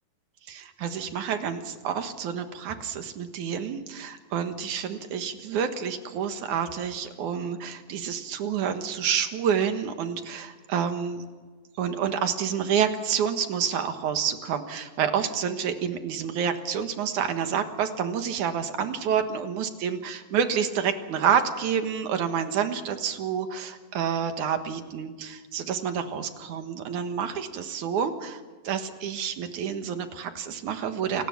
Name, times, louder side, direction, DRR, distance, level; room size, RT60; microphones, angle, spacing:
voice 1, 0.5-11.3 11.8-31.3, right 7 dB, 65° right, 7 dB, 2.7 m, -28 dB
29.0 x 18.5 x 6.0 m, 1.4 s
omnidirectional pair, 4.1 m